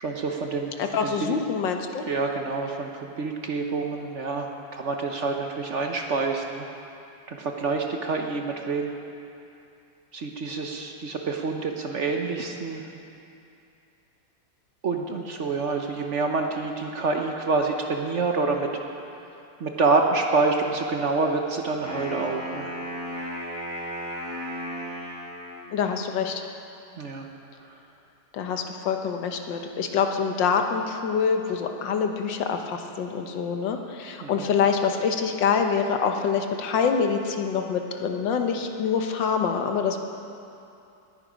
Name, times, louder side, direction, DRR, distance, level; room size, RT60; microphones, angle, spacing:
voice 1, 0.0-0.7 1.0-1.4 2.1-6.7 7.3-8.9 10.1-12.8 14.8-18.7 19.6-22.7 27.0-27.3 27.6-27.7 34.2-34.5, right 3 dB, 50° right, 3 dB, 1.0 m, -27 dB
voice 2, 0.8-2.0 25.7-26.4 28.3-40.0, left 6 dB, 85° left, 5 dB, 1.7 m, -25 dB
Wind instrument woodwind instrument, 21.7-25.7, equal, 35° left, 2.8 m, -35 dB
19.0 x 10.0 x 5.1 m, 2.7 s
omnidirectional pair, 1.9 m